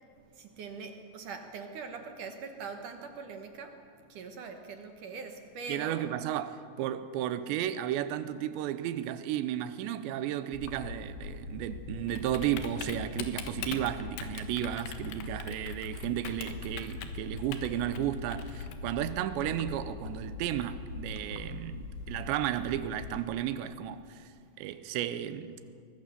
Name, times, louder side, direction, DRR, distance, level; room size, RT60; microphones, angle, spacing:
voice 1, 0.4-3.8 4.1-6.0, right 5 dB, 60° right, 2.3 m, -42 dB
voice 2, 5.7-24.3 24.6-25.5, right 11 dB, 90° right, 3.1 m, -33 dB
Typing, 10.5-23.2, left 4 dB, 75° left, 3.5 m, -41 dB
24.0 x 21.5 x 6.9 m
omnidirectional pair, 4.9 m